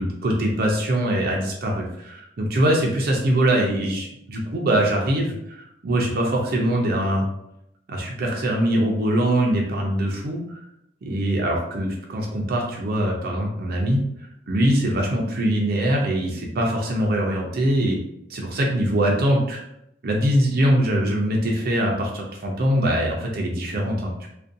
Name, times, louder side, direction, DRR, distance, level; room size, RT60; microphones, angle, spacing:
voice 1, 0.0-7.3 7.9-10.6 11.1-14.0 14.5-18.0 18.3-19.6 20.0-24.3, right 1 dB, 50° right, 0 dB, 0.4 m, -22 dB
2.5 x 2.2 x 2.5 m, 0.79 s
head